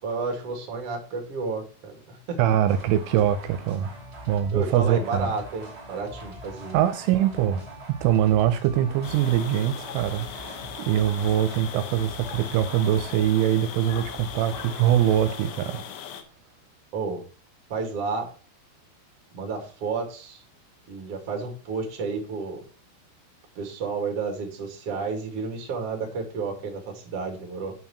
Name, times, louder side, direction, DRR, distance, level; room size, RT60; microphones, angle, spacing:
voice 1, 0.0-2.6 4.5-6.8 16.9-17.2 17.7-18.3 19.3-20.4 20.9-22.6 23.6-27.7, right 4 dB, 40° right, 2.3 m, -31 dB
voice 2, 2.4-3.9 4.3-5.3 6.7-7.6 7.9-15.8, right 11 dB, 80° right, 3.1 m, -23 dB
sound 1, 2.7-15.5, right 1 dB, 15° right, 1.2 m, -43 dB
sound 2, 9.0-16.2, left 9 dB, 75° left, 3.4 m, -39 dB
8.9 x 4.6 x 7.1 m
omnidirectional pair, 5.7 m